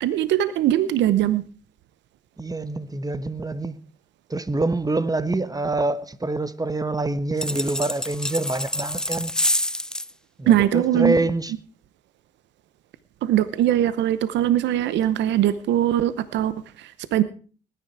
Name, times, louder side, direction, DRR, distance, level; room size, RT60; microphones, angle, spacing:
voice 1, 0.0-1.4 10.5-11.2 13.2-17.2, right 12 dB, 75° right, 0.8 m, -21 dB
voice 2, 2.4-3.8 4.3-9.3 10.4-11.5, right 2 dB, 20° right, 1.4 m, -26 dB
sound 1, 7.4-10.1, left 1 dB, 5° left, 0.6 m, -27 dB
19.0 x 10.5 x 4.7 m
supercardioid pair, 50°, 19 cm